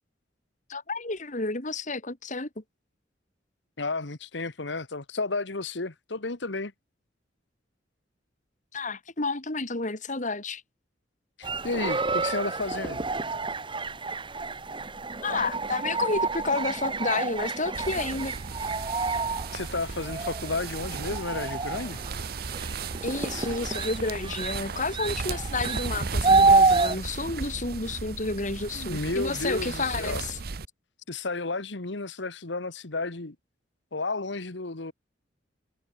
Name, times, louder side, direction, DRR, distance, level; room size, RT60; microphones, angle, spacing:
voice 1, 0.7-2.6 8.7-10.6 15.2-18.3 23.0-30.4, left 3 dB, 40° left, 2.5 m, -30 dB
voice 2, 3.8-6.7 11.4-13.0 19.5-22.0 28.7-30.2 31.1-33.3 33.9-34.9, left 3 dB, 75° left, 1.6 m, -32 dB
sound 1, 11.4-27.0, right 3 dB, 25° right, 1.7 m, -28 dB
sound 2, 17.7-30.7, right 4 dB, 55° right, 0.8 m, -35 dB
head